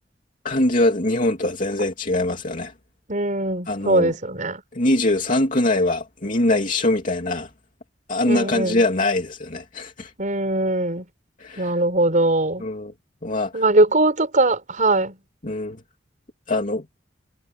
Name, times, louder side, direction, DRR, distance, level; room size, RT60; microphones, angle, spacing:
voice 1, 0.4-2.7 3.7-4.1 4.7-7.5 8.1-10.1 11.4-11.7 12.6-12.9 13.2-13.6 15.4-15.8 16.5-17.0, left 1 dB, 45° left, 2.8 m, -22 dB
voice 2, 3.1-4.6 8.3-8.8 10.2-11.1 11.6-12.6 13.5-15.2, right 2 dB, 45° right, 5.3 m, -21 dB
head